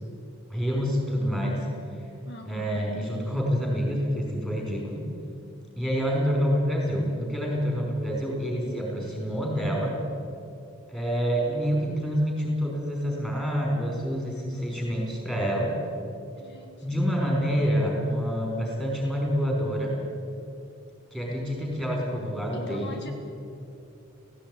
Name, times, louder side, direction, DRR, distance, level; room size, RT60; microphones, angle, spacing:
voice 1, 0.5-1.7 2.4-5.1 5.8-10.0 10.9-15.8 16.8-20.0 21.1-23.0, equal, 5° left, -2 dB, 5.3 m, -27 dB
voice 2, 2.3-2.9 16.4-17.1 22.5-23.1, left 1 dB, 50° left, 4 dB, 1.4 m, -42 dB
17.5 x 16.5 x 9.4 m, 2.6 s
head